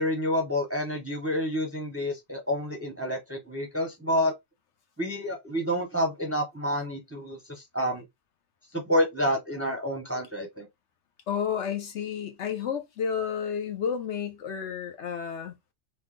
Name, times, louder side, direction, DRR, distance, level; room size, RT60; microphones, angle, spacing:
voice 1, 0.0-4.3 5.0-8.0 8.7-10.7, equal, 15° right, 0.6 m, -29 dB
voice 2, 11.3-15.5, left 7 dB, 70° left, 1.0 m, -31 dB
3.0 x 2.2 x 3.7 m
omnidirectional pair, 1.2 m